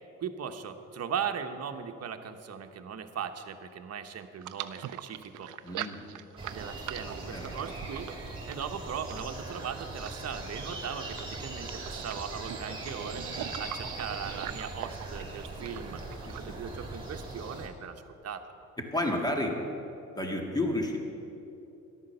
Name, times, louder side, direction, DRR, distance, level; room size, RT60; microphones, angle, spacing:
voice 1, 0.2-5.5 6.5-13.3 13.6-16.0 16.3-18.5, right 7 dB, 55° right, 7 dB, 1.1 m, -38 dB
sound 1, 4.4-16.5, right 13 dB, 80° right, 0.6 m, -42 dB
voice 2, 5.6-6.1 7.3-7.4 16.3-16.6 18.9-19.5 20.1-21.0, left 1 dB, 15° left, 1 dB, 2.2 m, -31 dB
sound 2, 6.4-17.7, right 2 dB, 15° right, 3.1 m, -40 dB
13.5 x 11.0 x 6.8 m, 2.9 s
cardioid pair, 90°, 30 cm